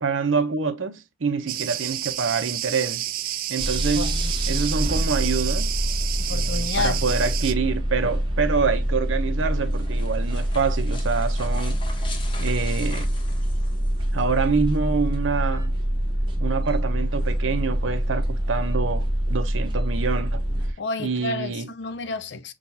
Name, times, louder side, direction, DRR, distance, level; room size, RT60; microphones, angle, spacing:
voice 1, 0.0-3.1 3.5-4.2 4.5-5.7 6.3-11.8 12.4-13.1 14.1-15.7 16.4-20.4 21.0-21.7, right 5 dB, 85° right, 0.6 m, -26 dB
Cricket, 1.5-7.5, right 12 dB, 45° right, 0.3 m, -30 dB
sound 1, 3.6-20.7, equal, 25° right, 0.8 m, -25 dB
voice 2, 4.0-4.6 6.2-7.0 20.8-22.5, left 3 dB, 65° left, 0.5 m, -30 dB
sound 2, 9.3-14.2, left 2 dB, 25° left, 0.7 m, -41 dB
6.1 x 2.3 x 2.7 m
head